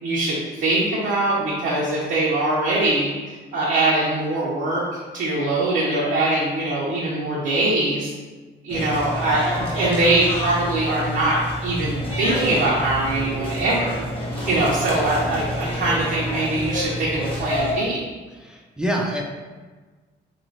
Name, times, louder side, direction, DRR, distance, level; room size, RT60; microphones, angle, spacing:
voice 1, 0.0-8.1 8.6-14.0 14.5-18.0, right 2 dB, 65° right, -6 dB, 0.7 m, -22 dB
sound 1, 8.7-17.7, equal, 25° left, 1.1 m, -28 dB
voice 2, 18.3-19.2, equal, 5° right, -1 dB, 0.4 m, -26 dB
3.0 x 2.9 x 2.7 m, 1.3 s
cardioid pair, 90°, 20 cm